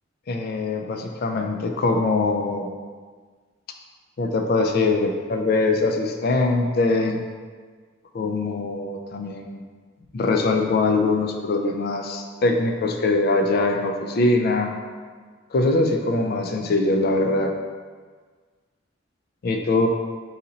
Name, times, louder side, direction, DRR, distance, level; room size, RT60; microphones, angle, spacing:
voice 1, 0.3-2.7 4.2-7.2 8.1-9.6 10.1-14.8 15.5-17.6 19.4-19.9, left 3 dB, 55° left, 4 dB, 0.4 m, -22 dB
4.0 x 3.9 x 2.8 m, 1.6 s
head